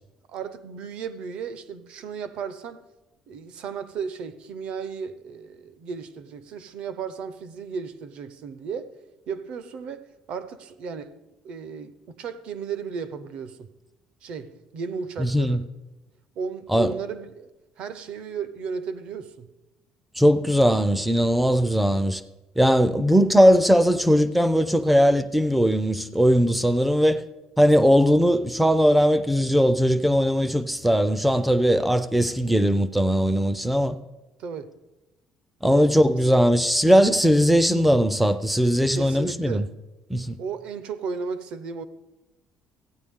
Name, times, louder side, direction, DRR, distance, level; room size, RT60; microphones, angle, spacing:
voice 1, 0.3-2.8 3.3-11.2 11.4-13.7 14.2-15.6 16.4-17.5 17.8-19.5 34.4-34.8 35.7-36.1 38.9-39.7 40.4-41.8, right 6 dB, 55° right, 0.7 m, -35 dB
voice 2, 15.2-15.6 16.7-16.9 20.2-22.2 22.6-27.2 27.6-34.0 35.6-39.7 40.1-40.4, equal, 5° right, 0.4 m, -19 dB
15.0 x 9.2 x 3.6 m
cardioid pair, 175°, 2 cm